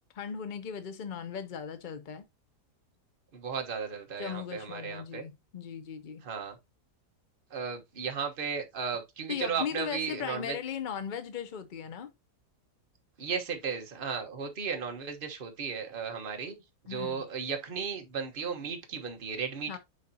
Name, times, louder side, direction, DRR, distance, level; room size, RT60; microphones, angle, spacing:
voice 1, 0.1-2.3 4.2-6.2 9.3-12.1 16.9-17.3 19.7-19.8, left 7 dB, 65° left, 0.4 m, -38 dB
voice 2, 3.3-5.2 6.2-6.6 7.5-10.6 13.2-16.5 16.8-19.8, right 6 dB, 35° right, 1.3 m, -35 dB
9.9 x 4.0 x 2.8 m
omnidirectional pair, 1.8 m